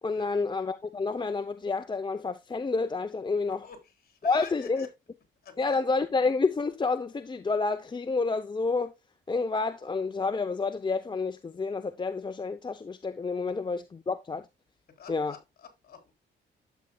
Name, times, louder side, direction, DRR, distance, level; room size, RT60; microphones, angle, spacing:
voice 1, 0.0-3.6 4.2-4.9 5.6-8.9 9.3-14.5 15.1-15.3, left 4 dB, 25° left, 0.7 m, -29 dB
voice 2, 3.5-4.9 5.4-5.8 15.0-16.1, left 6 dB, 50° left, 3.9 m, -48 dB
11.5 x 8.2 x 2.3 m
cardioid pair, 90°, 20 cm